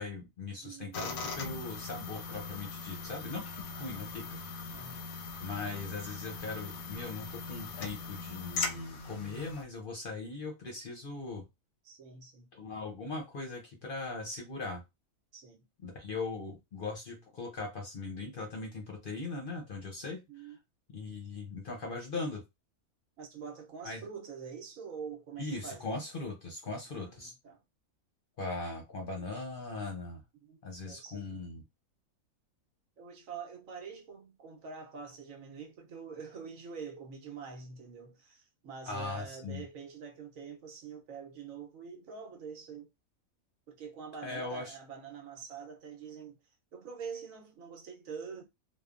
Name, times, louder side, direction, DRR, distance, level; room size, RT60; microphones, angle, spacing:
voice 1, 0.0-4.4 5.4-11.4 12.5-14.8 15.8-20.5 20.9-22.4 23.8-24.0 25.4-27.3 28.4-30.2 30.6-31.6 38.9-39.6 44.2-44.8, left 3 dB, 50° left, 0.7 m, -39 dB
voice 2, 0.6-1.1 3.7-4.2 4.7-5.1 11.8-12.5 15.3-15.6 20.3-20.6 23.2-26.0 26.9-27.6 30.4-31.5 33.0-42.9 43.7-46.4 46.7-48.4, right 6 dB, 70° right, 1.1 m, -46 dB
sound 1, 0.9-9.6, left 4 dB, 85° left, 1.0 m, -40 dB
3.2 x 2.1 x 2.4 m
omnidirectional pair, 1.5 m